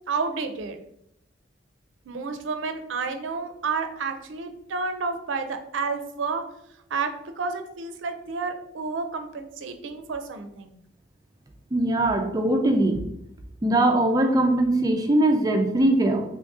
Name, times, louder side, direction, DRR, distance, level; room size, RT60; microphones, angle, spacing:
voice 1, 0.1-0.8 2.1-6.4 6.9-10.8, right 4 dB, 80° right, 7 dB, 0.5 m, -30 dB
voice 2, 11.7-13.0 13.6-16.2, right 1 dB, 20° right, 4 dB, 0.3 m, -21 dB
3.1 x 2.7 x 3.5 m, 0.76 s
head